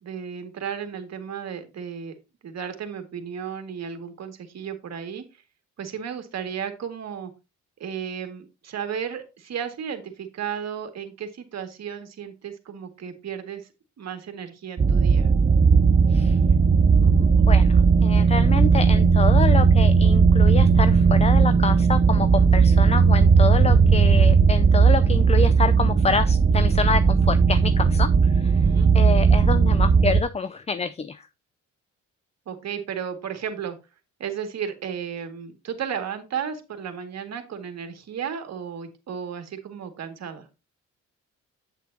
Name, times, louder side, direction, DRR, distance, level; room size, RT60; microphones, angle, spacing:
voice 1, 0.0-2.1 2.4-5.4 5.8-7.3 7.8-13.7 14.0-15.3 28.6-28.9 32.5-33.8 34.2-40.5, right 7 dB, 60° right, 2.0 m, -34 dB
sound 1, 14.8-30.2, right 5 dB, 25° right, 0.6 m, -17 dB
voice 2, 17.0-28.7 28.9-31.3, left 5 dB, 20° left, 0.4 m, -27 dB
8.5 x 7.6 x 2.7 m
cardioid pair, 90°, 30 cm